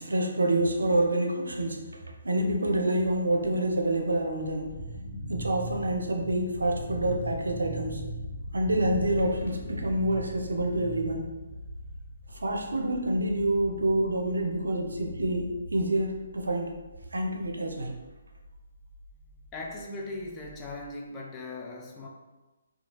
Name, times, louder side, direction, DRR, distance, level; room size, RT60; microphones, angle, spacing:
voice 1, 0.0-1.9 2.2-4.8 5.3-8.0 8.5-11.3 12.3-16.7 17.1-18.0, right 1 dB, 80° right, 2 dB, 0.5 m, -27 dB
sound 1, 3.2-20.9, equal, 5° right, 0.7 m, -41 dB
voice 2, 19.5-22.1, left 2 dB, 20° left, -1 dB, 0.4 m, -39 dB
2.8 x 2.3 x 2.9 m, 1.2 s
figure-of-eight pair, 145°, 0 cm